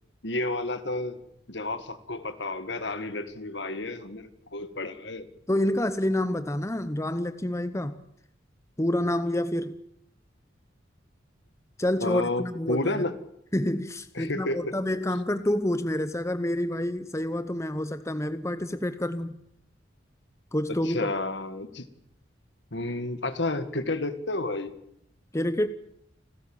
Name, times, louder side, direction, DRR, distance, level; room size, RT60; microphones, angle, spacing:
voice 1, 0.2-1.2 1.5-5.3 12.0-13.2 14.1-14.7 20.8-21.9 22.7-24.8, left 2 dB, 60° left, 10 dB, 1.9 m, -31 dB
voice 2, 5.5-8.0 8.8-9.8 11.8-13.0 13.5-19.4 20.5-21.1 25.3-25.7, left 1 dB, 15° left, 11 dB, 0.8 m, -28 dB
29.5 x 13.5 x 9.0 m, 0.75 s
head